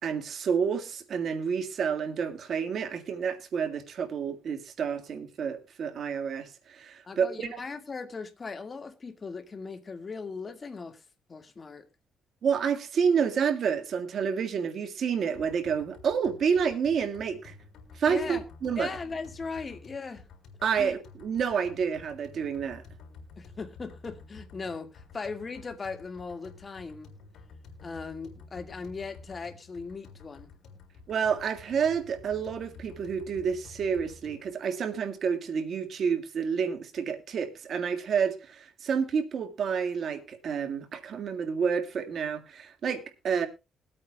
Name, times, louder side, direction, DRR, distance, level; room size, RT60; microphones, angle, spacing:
voice 1, 0.0-7.5 12.4-17.5 17.9-18.9 20.6-22.8 31.1-43.5, right 6 dB, 60° right, 1.8 m, -29 dB
voice 2, 7.1-11.0 11.3-11.9 18.1-18.4 18.8-20.3 20.8-21.0 23.4-27.1 27.8-30.5, left 4 dB, 35° left, 1.9 m, -38 dB
sound 1, 15.3-34.5, left 4 dB, 70° left, 3.8 m, -51 dB
22.0 x 8.7 x 2.3 m
cardioid pair, 90°, 0 cm